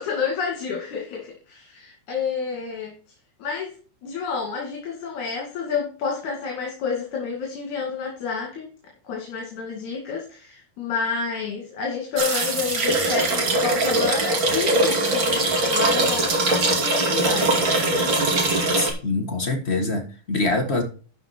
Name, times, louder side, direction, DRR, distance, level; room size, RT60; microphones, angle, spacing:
voice 1, 0.0-2.9 3.4-3.7 4.0-8.7 9.0-18.1, left 5 dB, 75° left, 0 dB, 3.6 m, -29 dB
sound 1, 12.2-18.9, right 2 dB, 40° right, 3.0 m, -21 dB
voice 2, 18.8-20.8, left 2 dB, 30° left, 4 dB, 1.2 m, -24 dB
12.5 x 5.7 x 4.4 m, 0.38 s
omnidirectional pair, 3.5 m